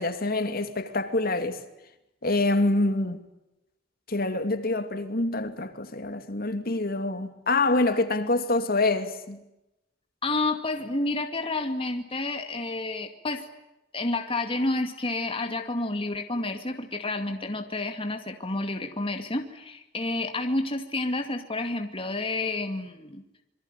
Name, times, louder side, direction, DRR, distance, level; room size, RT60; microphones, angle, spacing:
voice 1, 0.0-1.6 2.2-3.2 4.1-9.4, left 2 dB, 55° left, 2.7 m, -26 dB
voice 2, 10.2-13.4 13.9-23.2, left 2 dB, 30° left, 2.3 m, -30 dB
27.0 x 23.5 x 9.2 m
head